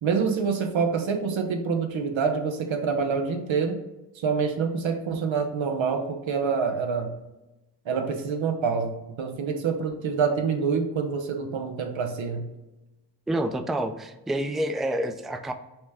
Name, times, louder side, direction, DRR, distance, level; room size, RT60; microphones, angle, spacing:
voice 1, 0.0-3.8 4.2-7.2 7.9-12.5, right 5 dB, 90° right, 4 dB, 0.7 m, -26 dB
voice 2, 13.3-15.5, right 1 dB, ahead, 8 dB, 0.3 m, -28 dB
5.7 x 2.2 x 3.4 m, 0.99 s
cardioid pair, 40°, 45 cm